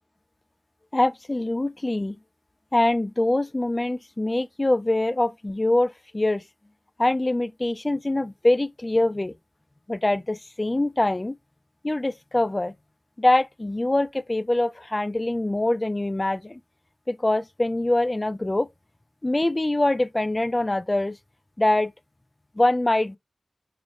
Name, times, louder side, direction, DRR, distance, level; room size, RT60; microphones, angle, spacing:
voice 1, 0.9-2.2 2.7-6.4 7.0-9.3 9.9-11.4 11.8-12.7 13.2-16.6 17.1-18.7 19.2-21.2 21.6-21.9 22.6-23.2, left 1 dB, 25° left, 0.3 m, -24 dB
4.7 x 2.0 x 2.5 m
wide cardioid pair, 70°, 0 cm